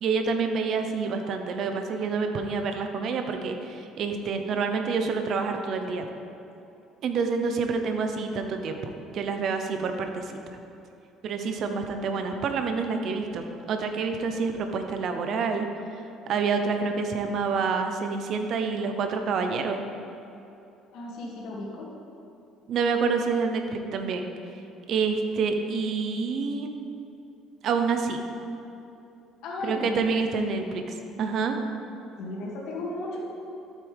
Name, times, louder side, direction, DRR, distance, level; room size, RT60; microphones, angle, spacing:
voice 1, 0.0-6.0 7.0-8.8 9.1-10.4 11.2-15.7 16.3-19.8 22.7-24.3 24.9-26.7 27.6-28.2 29.6-30.8 31.2-31.6, right 5 dB, 50° right, 5 dB, 0.8 m, -27 dB
voice 2, 20.9-21.9 29.4-30.6 32.2-33.2, left 2 dB, 70° left, -4 dB, 2.4 m, -35 dB
12.5 x 8.5 x 3.6 m, 2.8 s
cardioid pair, 130°, 0 cm